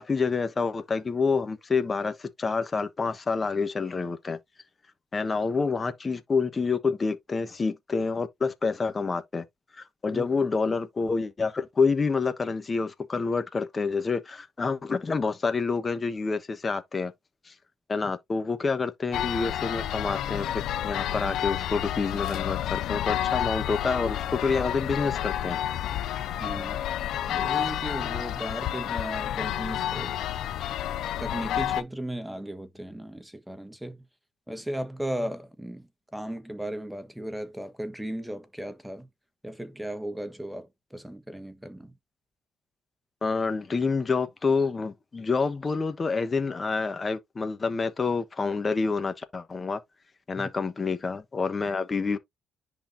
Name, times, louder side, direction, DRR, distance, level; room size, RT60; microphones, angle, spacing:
voice 1, 0.0-4.4 5.1-9.4 9.7-17.1 17.4-17.5 17.9-25.6 43.2-49.8 50.3-52.2, left 4 dB, 30° left, 1.2 m, -28 dB
sound 1, 19.1-31.8, left 11 dB, 70° left, 0.6 m, -30 dB
voice 2, 26.4-26.8 27.3-30.2 31.2-34.0 34.5-39.1 39.4-41.9 50.4-50.5, right 1 dB, 5° right, 1.4 m, -36 dB
10.0 x 4.0 x 2.7 m
supercardioid pair, 75°, 0 cm